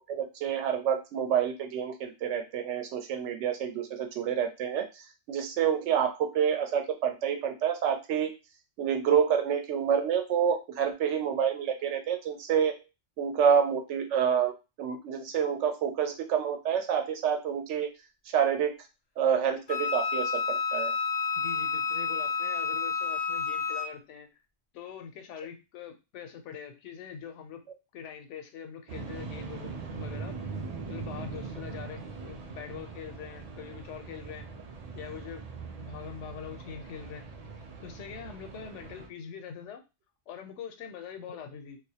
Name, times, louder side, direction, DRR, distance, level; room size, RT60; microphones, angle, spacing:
voice 1, 0.1-5.0 5.3-8.3 8.8-12.8 13.2-14.5 14.8-17.9 18.3-18.7 19.2-20.9, right 8 dB, 85° right, 5 dB, 0.9 m, -28 dB
Wind instrument woodwind instrument, 19.7-23.9, left 5 dB, 50° left, 0.5 m, -30 dB
voice 2, 21.4-24.3 24.7-27.6 27.9-30.3 30.9-34.5 34.9-35.5 35.8-37.2 37.8-39.8 40.3-41.8, left 8 dB, 90° left, 6 dB, 0.9 m, -43 dB
sound 1, 28.9-39.1, right 4 dB, 65° right, 0.4 m, -41 dB
2.2 x 2.0 x 2.7 m, 0.27 s
omnidirectional pair, 1.2 m